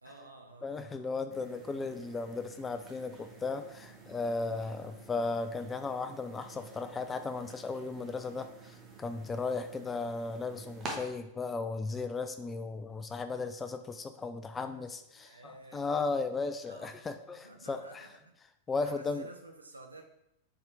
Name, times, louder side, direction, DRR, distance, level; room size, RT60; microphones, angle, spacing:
voice 1, 0.0-1.1 4.3-4.6 14.7-14.8 15.1-15.9 16.7-17.1 17.3-18.4 18.8-20.0, right 2 dB, 80° right, 4 dB, 0.6 m, -52 dB
voice 2, 0.6-18.1 18.7-19.3, left 3 dB, 15° left, 10 dB, 0.4 m, -36 dB
sound 1, 1.3-10.9, right 3 dB, 25° right, 1.0 m, -50 dB
4.2 x 3.7 x 3.4 m, 0.82 s
figure-of-eight pair, 90°, 0 cm